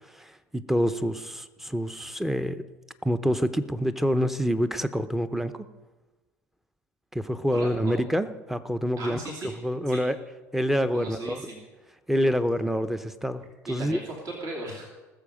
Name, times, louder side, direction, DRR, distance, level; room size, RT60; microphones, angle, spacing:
voice 1, 0.1-2.6 3.0-5.6 7.1-9.2 9.6-10.2 10.5-11.4 12.1-14.0, equal, 5° right, 11 dB, 0.8 m, -27 dB
voice 2, 7.5-8.0 9.0-9.5 9.9-10.0 10.9-11.6 13.7-14.8, right 2 dB, 50° right, -2 dB, 2.8 m, -37 dB
19.5 x 7.0 x 5.1 m, 1.2 s
hypercardioid pair, 75°, 8 cm